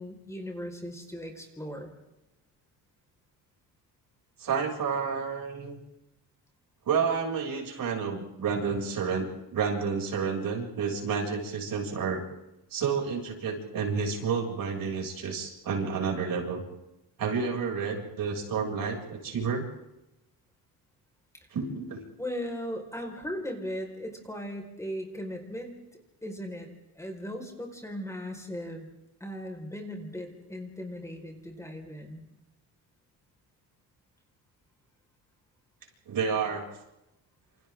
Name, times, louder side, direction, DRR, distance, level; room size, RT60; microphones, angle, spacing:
voice 1, 0.0-1.9 22.2-25.7 26.2-26.7 26.9-28.9 29.2-32.2, equal, 10° left, 2 dB, 5.1 m, -37 dB
voice 2, 4.4-5.8 6.9-12.2 12.7-16.6 17.2-19.7 21.5-22.0 36.1-36.6, right 5 dB, 60° right, 0 dB, 7.2 m, -30 dB
29.0 x 28.0 x 3.8 m, 0.92 s
cardioid pair, 120°, 38 cm